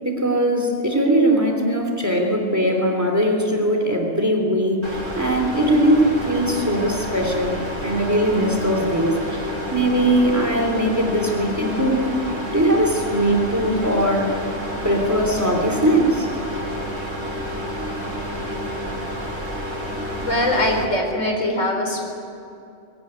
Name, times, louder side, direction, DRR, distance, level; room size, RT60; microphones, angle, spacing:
voice 1, 0.0-7.6 7.8-12.1 12.5-14.4 14.8-16.3, right 1 dB, 15° right, 2 dB, 3.3 m, -20 dB
sound 1, 4.8-20.9, equal, 80° right, 4.7 m, -29 dB
voice 2, 20.2-22.1, left 1 dB, 85° left, 2 dB, 4.8 m, -22 dB
22.5 x 18.5 x 9.7 m, 2.6 s
omnidirectional pair, 1.3 m